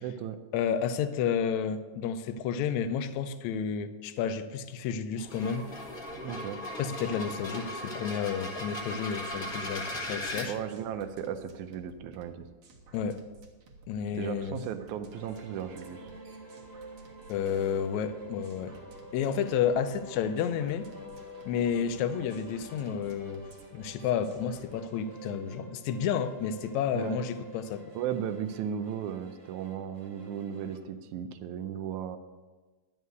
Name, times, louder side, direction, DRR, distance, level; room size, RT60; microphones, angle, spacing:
voice 1, 0.0-0.4 6.1-6.6 10.5-12.5 14.1-16.1 26.9-27.2 28.0-32.2, right 9 dB, 80° right, 9 dB, 2.0 m, -36 dB
voice 2, 0.5-5.7 6.8-10.5 12.9-13.2 13.9-14.7 17.3-18.8 19.1-20.9 21.5-23.4 23.7-27.8, left 7 dB, 75° left, 10 dB, 1.8 m, -31 dB
sound 1, 5.2-10.5, left 1 dB, 35° left, 1.6 m, -37 dB
sound 2, 9.3-24.7, right 3 dB, 55° right, 2.0 m, -55 dB
sound 3, 15.1-30.8, right 1 dB, 25° right, 1.7 m, -48 dB
11.0 x 5.6 x 8.0 m, 1.3 s
omnidirectional pair, 3.7 m